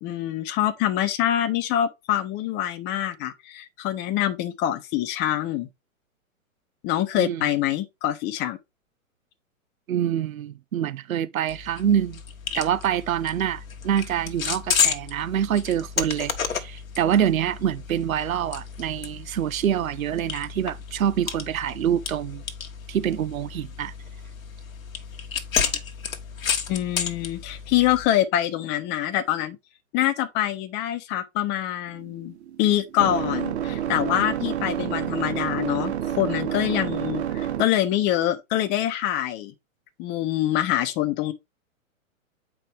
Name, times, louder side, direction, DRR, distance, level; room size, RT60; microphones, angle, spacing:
voice 1, 0.0-5.7 6.8-8.6 11.8-12.0 26.7-29.6 29.9-39.5 40.0-41.3, left 12 dB, 25° left, 0.9 m, -25 dB
voice 2, 9.9-12.2 12.5-22.4 22.9-23.9, right 10 dB, 75° right, 0.7 m, -26 dB
sound 1, 11.5-28.1, left 7 dB, 75° left, 1.2 m, -32 dB
sound 2, 31.9-37.9, right 10 dB, 50° right, 1.0 m, -29 dB
7.7 x 4.7 x 3.2 m
hypercardioid pair, 120°, 41 cm